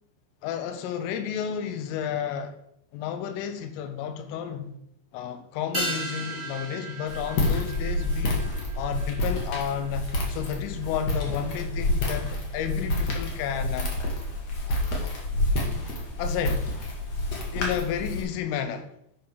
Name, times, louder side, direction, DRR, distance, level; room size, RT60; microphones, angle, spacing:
voice 1, 0.4-2.6 2.9-4.8 5.1-8.5 8.8-13.9 14.7-14.8 16.2-16.7 17.5-18.9, left 8 dB, 85° left, 3.5 m, -32 dB
sound 1, 5.7-10.5 10.7-10.8, right 2 dB, 25° right, 0.6 m, -36 dB
Walk footsteps, 7.1-18.2, left 1 dB, 55° left, 1.9 m, -28 dB
11.0 x 5.9 x 5.2 m
omnidirectional pair, 5.7 m